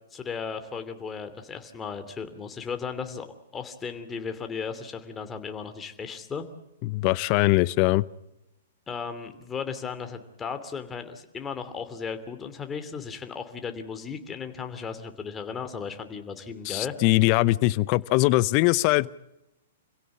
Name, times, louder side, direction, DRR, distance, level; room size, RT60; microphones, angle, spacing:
voice 1, 0.1-3.3 3.5-6.4 8.9-16.9, left 6 dB, 15° left, 8 dB, 2.8 m, -35 dB
voice 2, 6.8-8.0 16.6-19.1, left 20 dB, 40° left, 20 dB, 0.8 m, -21 dB
27.0 x 16.5 x 8.5 m, 0.91 s
hypercardioid pair, 120°, 0 cm